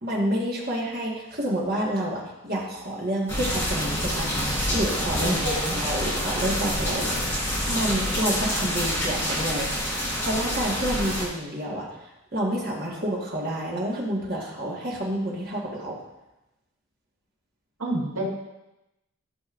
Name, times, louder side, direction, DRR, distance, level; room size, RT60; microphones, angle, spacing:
voice 1, 0.0-9.7 10.2-12.1 12.3-16.0, right 1 dB, 45° right, -3 dB, 1.6 m, -29 dB
sound 1, 3.3-11.3, equal, 10° left, 1.5 m, -27 dB
voice 2, 5.2-5.8 17.8-18.2, right 1 dB, 75° right, -4 dB, 1.9 m, -29 dB
12.5 x 5.2 x 2.6 m, 0.92 s
head